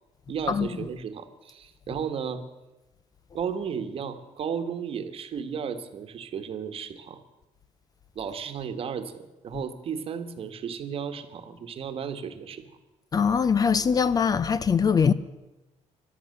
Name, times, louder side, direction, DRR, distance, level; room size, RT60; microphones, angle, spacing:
voice 1, 0.3-2.4 3.3-7.2 8.1-12.6, right 7 dB, 50° right, 1.4 m, -34 dB
voice 2, 13.1-15.1, left 6 dB, 30° left, 0.6 m, -22 dB
14.0 x 12.0 x 7.7 m
cardioid pair, 130°, 13 cm